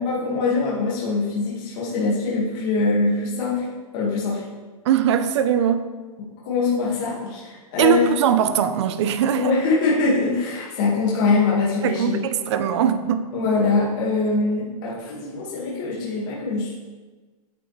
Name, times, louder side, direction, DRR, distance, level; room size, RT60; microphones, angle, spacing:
voice 1, 0.0-3.6 3.9-4.4 6.4-8.1 9.4-12.2 13.3-16.8, left 3 dB, 35° left, -6 dB, 1.9 m, -23 dB
voice 2, 4.8-6.0 7.8-9.5 11.8-13.3, right 9 dB, 45° right, 10 dB, 0.6 m, -21 dB
8.9 x 7.5 x 3.3 m, 1.3 s
hypercardioid pair, 165°, 20 cm